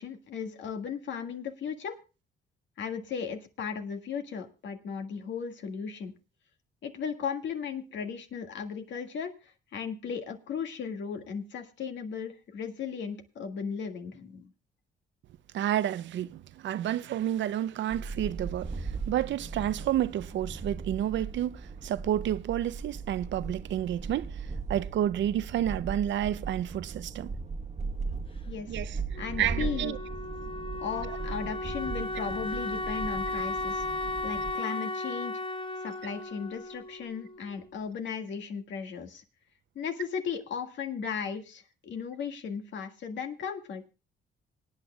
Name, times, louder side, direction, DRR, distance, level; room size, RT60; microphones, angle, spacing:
voice 1, 0.0-2.0 2.8-6.1 6.8-14.5 28.5-28.8 29.1-29.9 30.8-33.8 34.2-35.4 35.8-39.2 39.8-43.8, left 6 dB, 70° left, 1.8 m, -36 dB
voice 2, 15.5-24.4 24.7-27.3 28.7-29.0 29.4-30.0, right 11 dB, 70° right, 0.6 m, -30 dB
sound 1, 17.9-34.5, right 4 dB, 35° right, 1.2 m, -38 dB
Wind instrument woodwind instrument, 29.1-37.8, left 2 dB, 25° left, 1.3 m, -36 dB
25.5 x 9.1 x 2.3 m
cardioid pair, 90°, 20 cm